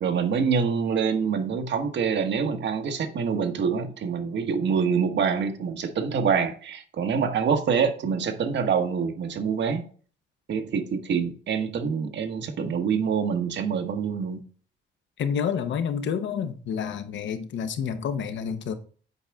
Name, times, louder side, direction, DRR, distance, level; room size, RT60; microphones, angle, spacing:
voice 1, 0.0-9.8 10.5-14.4, right 6 dB, 65° right, 1.2 m, -26 dB
voice 2, 15.2-18.7, left 7 dB, 70° left, 1.0 m, -29 dB
8.1 x 5.0 x 3.5 m
cardioid pair, 90°, 20 cm